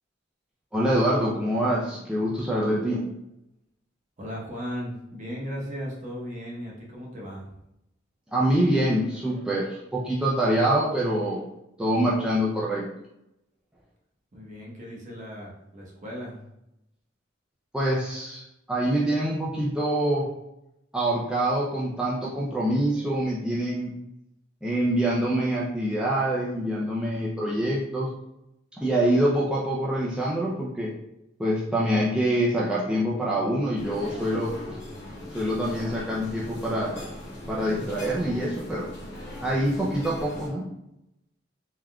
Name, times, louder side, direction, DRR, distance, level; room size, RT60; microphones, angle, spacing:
voice 1, 0.7-3.1 8.3-11.4 11.8-12.9 17.7-20.3 20.9-23.9 24.6-28.1 28.8-30.9 31.4-34.5 35.3-37.1 37.5-38.9 39.4-40.6, right 1 dB, 5° right, -6 dB, 0.3 m, -25 dB
voice 2, 4.2-7.5 14.3-16.4, equal, 40° right, -4 dB, 0.9 m, -36 dB
sound 1, 33.8-40.5, left 1 dB, 65° left, 0.9 m, -39 dB
3.4 x 2.3 x 2.2 m, 0.85 s
head